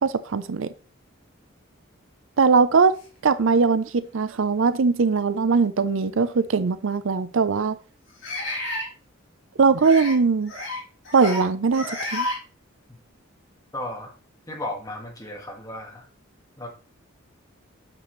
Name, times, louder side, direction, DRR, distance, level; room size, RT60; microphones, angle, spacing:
voice 1, 0.0-0.7 2.4-2.9 3.2-7.8 9.6-10.5 11.1-12.3, right 4 dB, 70° right, 0.5 m, -20 dB
sound 1, 3.4-3.5 4.3-4.4 6.0-6.1 8.2-8.9 9.8-10.1 10.5-10.8 11.0-11.4 11.7-12.4, left 2 dB, 60° left, 4.9 m, -30 dB
voice 2, 13.7-14.1 14.5-16.1 16.6-16.7, left 1 dB, 15° left, 1.8 m, -34 dB
8.3 x 7.0 x 3.2 m
head